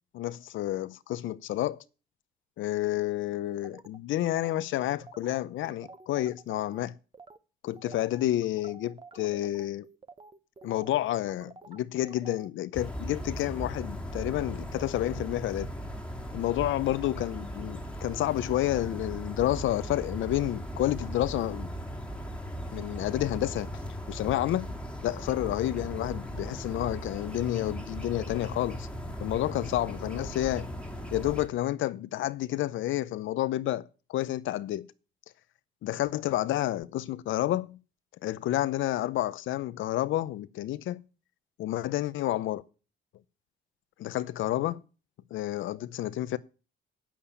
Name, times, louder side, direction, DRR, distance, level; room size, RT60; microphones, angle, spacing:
voice 1, 0.1-1.8 2.6-6.9 7.6-9.9 10.6-15.7 16.3-21.7 22.7-23.7 24.1-24.8 25.0-28.9 29.2-30.7 31.1-34.9 35.8-37.8 38.2-41.0 41.6-42.6 44.0-44.8 45.3-46.4, left 14 dB, 80° left, 0.6 m, -30 dB
sound 1, 3.6-6.8 7.1-7.4 7.7-12.5, right 3 dB, 25° right, 0.9 m, -50 dB
sound 2, 12.7-31.5, equal, 5° left, 1.9 m, -38 dB
8.6 x 7.2 x 8.5 m
cardioid pair, 90°, 20 cm